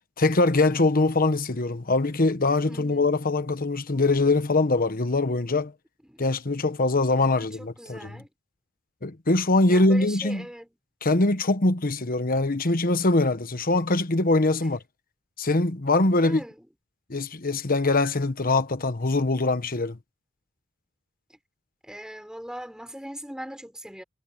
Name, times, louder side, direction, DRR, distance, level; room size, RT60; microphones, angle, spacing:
voice 1, 0.2-5.7 6.2-8.1 9.0-10.4 11.0-14.8 15.4-16.4 17.1-20.0, left 2 dB, 40° left, 1.2 m, -23 dB
voice 2, 2.7-3.2 6.0-6.2 7.3-8.3 9.7-10.7 14.6-14.7 16.1-16.7 21.3-21.4 21.8-24.0, equal, 5° right, 5.5 m, -40 dB
head